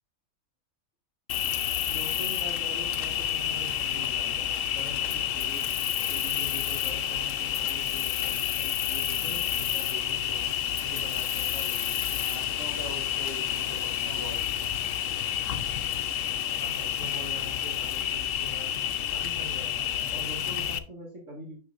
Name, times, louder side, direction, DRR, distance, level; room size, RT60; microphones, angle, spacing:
Cricket, 1.3-20.8, left 10 dB, 70° left, 1.0 m, -29 dB
voice 1, 1.9-5.7 6.1-10.6 10.8-12.2 16.6-18.8 19.1-21.6, equal, 60° right, -3 dB, 2.3 m, -43 dB
voice 2, 12.2-14.4, right 1 dB, 45° right, -1 dB, 2.7 m, -42 dB
9.4 x 6.0 x 2.5 m, 0.39 s
omnidirectional pair, 1.5 m